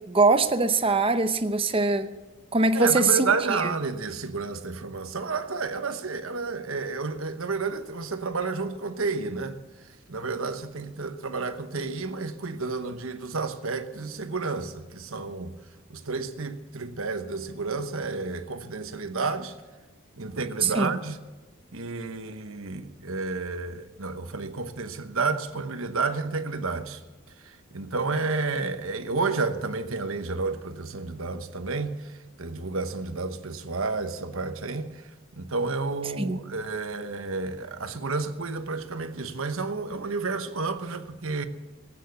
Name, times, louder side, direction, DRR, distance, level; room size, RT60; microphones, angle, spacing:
voice 1, 0.1-2.1 2.5-3.7 20.6-20.9 36.2-36.4, right 3 dB, 25° right, 0.8 m, -22 dB
voice 2, 2.7-9.6 10.1-15.5 15.9-19.5 20.2-21.2 21.7-27.0 27.4-32.0 32.4-34.9 35.3-41.5, right 4 dB, 70° right, 1.1 m, -31 dB
18.0 x 9.3 x 8.2 m
head